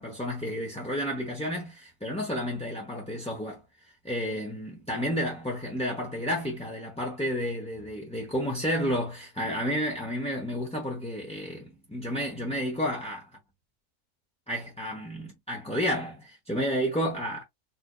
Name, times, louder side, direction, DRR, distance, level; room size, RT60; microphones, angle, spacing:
voice 1, 0.0-3.6 4.0-13.3 14.5-17.4, equal, 5° left, 0.7 m, -31 dB
4.2 x 2.7 x 2.2 m
omnidirectional pair, 1.4 m